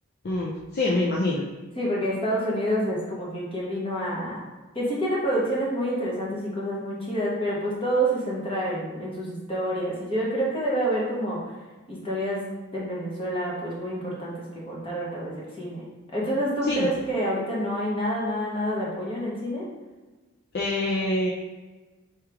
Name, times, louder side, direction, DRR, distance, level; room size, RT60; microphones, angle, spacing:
voice 1, 0.2-1.5 16.7-16.9 20.5-21.3, left 2 dB, 45° left, -3 dB, 0.5 m, -25 dB
voice 2, 1.8-4.4 4.7-11.6 11.9-12.4 12.7-19.7, right 1 dB, 25° left, -5 dB, 1.3 m, -28 dB
4.5 x 3.3 x 3.5 m, 1.2 s
head